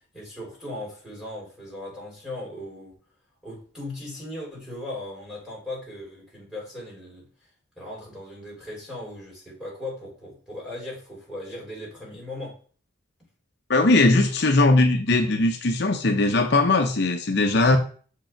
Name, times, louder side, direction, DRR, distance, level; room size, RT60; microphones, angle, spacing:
voice 1, 0.0-2.9 3.4-7.3 7.7-12.6, left 1 dB, ahead, -4 dB, 3.4 m, -38 dB
voice 2, 13.7-17.8, left 2 dB, 55° left, 4 dB, 0.7 m, -19 dB
6.7 x 5.0 x 4.4 m, 0.42 s
head